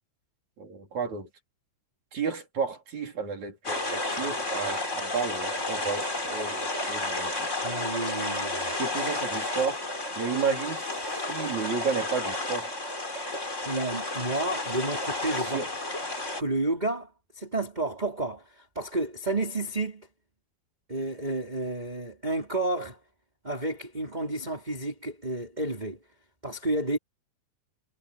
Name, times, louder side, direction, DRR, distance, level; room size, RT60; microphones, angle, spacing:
voice 1, 0.6-1.3 2.1-7.5 8.8-9.8 10.2-12.7 15.4-15.7, right 5 dB, 40° right, 5.0 m, -32 dB
sound 1, 3.6-16.4, left 2 dB, 15° left, 4.6 m, -32 dB
voice 2, 7.6-8.8 13.6-15.6 16.4-20.1 20.9-23.0 23.4-26.0 26.4-27.0, right 2 dB, 10° right, 4.4 m, -31 dB
omnidirectional pair, 5.2 m